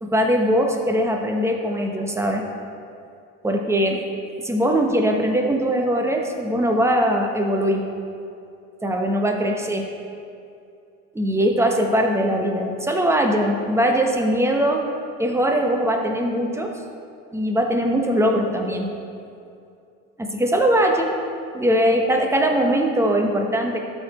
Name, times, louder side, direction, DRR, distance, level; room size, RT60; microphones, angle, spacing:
voice 1, 0.0-2.4 3.4-4.0 4.4-7.9 8.8-9.9 11.1-14.8 15.2-16.7 17.3-18.9 20.2-21.1 21.5-23.8, equal, 5° right, 2 dB, 1.1 m, -21 dB
13.0 x 4.4 x 4.3 m, 2.5 s
hypercardioid pair, 85°, 40 cm